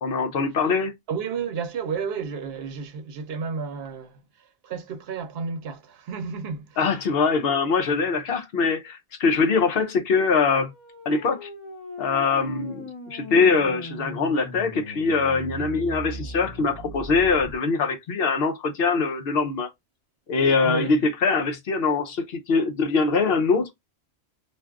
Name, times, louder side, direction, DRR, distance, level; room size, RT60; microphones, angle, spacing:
voice 1, 0.0-0.9 6.8-10.7 11.1-11.5 12.0-12.8 13.1-19.7 20.3-23.7, left 4 dB, 65° left, 0.9 m, -23 dB
voice 2, 1.1-4.2 4.6-6.8 15.6-15.8 20.6-20.9, right 5 dB, 70° right, 0.9 m, -32 dB
sound 1, 10.4-17.5, right 1 dB, 25° left, 1.1 m, -39 dB
2.6 x 2.4 x 3.4 m
omnidirectional pair, 1.1 m